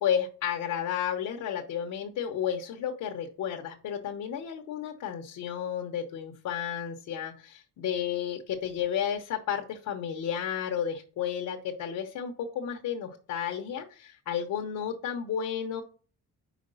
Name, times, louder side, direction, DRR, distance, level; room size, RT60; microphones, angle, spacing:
voice 1, 0.0-15.8, left 8 dB, 85° left, 3 dB, 1.0 m, -32 dB
5.1 x 4.7 x 5.4 m, 0.39 s
cardioid pair, 110°, 31 cm